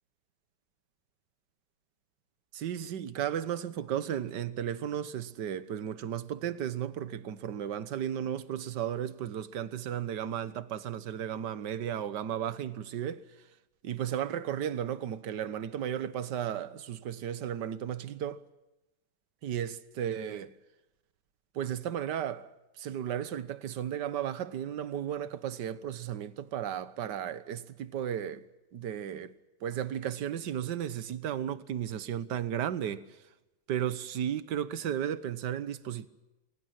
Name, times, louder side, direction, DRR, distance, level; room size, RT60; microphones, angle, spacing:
voice 1, 2.5-13.2 13.8-18.4 19.4-20.5 21.5-22.5 22.8-28.4 28.7-29.3 29.6-33.0 33.7-36.1, right 9 dB, 60° right, 1.7 m, -34 dB
29.5 x 23.0 x 6.0 m
omnidirectional pair, 2.3 m